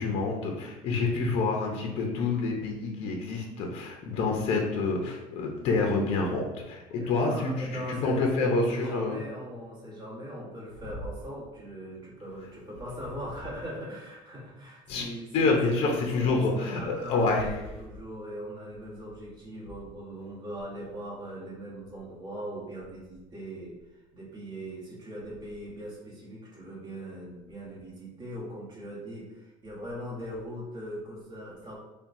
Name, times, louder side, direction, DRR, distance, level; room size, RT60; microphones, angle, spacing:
voice 1, 0.0-9.2 14.9-15.1 15.3-17.5, left 3 dB, 45° left, 1 dB, 0.6 m, -27 dB
voice 2, 7.0-23.8 24.1-31.8, equal, 30° right, -6 dB, 1.2 m, -40 dB
5.6 x 2.2 x 2.6 m, 1.0 s
cardioid pair, 160°, 14 cm